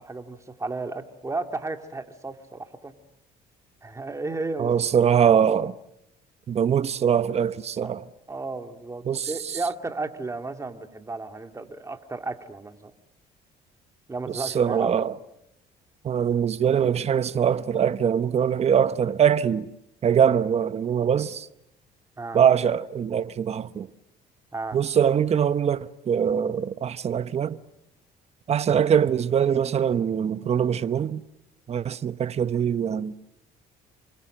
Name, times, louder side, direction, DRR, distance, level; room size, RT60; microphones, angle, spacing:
voice 1, 0.0-2.9 3.8-4.7 7.8-7.9 8.3-12.9 14.1-15.0 22.2-22.4 24.5-24.8, right 3 dB, 20° right, 2.4 m, -33 dB
voice 2, 4.6-5.7 6.5-8.0 9.1-9.3 14.3-15.2 16.0-19.7 20.0-21.5 22.3-23.9 24.7-27.6 28.5-31.2 31.7-33.1, right 8 dB, 40° right, 0.9 m, -23 dB
28.0 x 24.5 x 7.7 m
cardioid pair, 110°, 17 cm